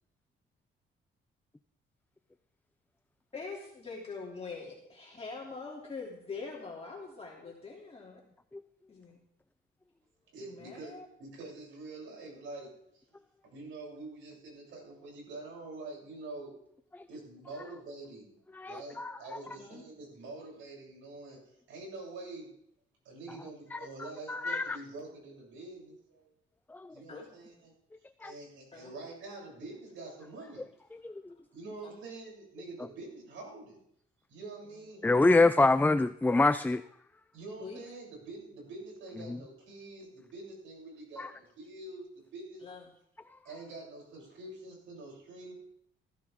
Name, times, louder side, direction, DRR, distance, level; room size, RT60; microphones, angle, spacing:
voice 1, 3.3-8.2 8.9-9.2 10.4-11.0 19.4-19.8 27.1-27.3 28.7-28.9 31.8-31.9 35.0-35.6 37.6-37.8 42.6-42.9, left 4 dB, 30° left, -3 dB, 3.1 m, -44 dB
voice 2, 10.3-13.2 13.4-16.5 17.1-18.4 18.7-22.5 23.0-26.3 26.9-27.7 28.2-30.7 31.5-33.8 34.3-35.1 37.3-42.6 43.4-45.5, right 2 dB, 80° right, -2 dB, 8.0 m, -46 dB
voice 3, 18.5-19.1 23.7-23.8 24.3-24.8 26.7-27.0 28.2-28.3 31.0-31.1 35.0-36.8 39.3-39.4 41.2-41.3, left 2 dB, 10° left, 12 dB, 0.5 m, -25 dB
18.5 x 14.5 x 3.7 m, 0.72 s
cardioid pair, 90°, 20 cm